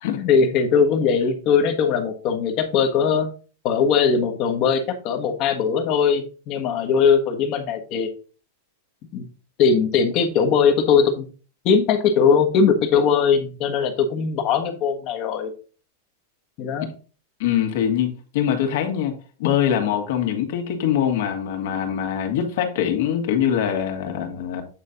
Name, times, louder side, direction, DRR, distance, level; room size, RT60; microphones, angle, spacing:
voice 1, 0.2-3.3 3.6-8.1 9.1-9.2 9.6-11.3 11.6-15.5 16.6-16.9, left 6 dB, 40° left, 6 dB, 1.4 m, -20 dB
voice 2, 17.4-19.1 19.4-24.6, left 9 dB, 65° left, 4 dB, 2.0 m, -23 dB
8.9 x 4.2 x 3.9 m, 0.38 s
supercardioid pair, 145°, 0 cm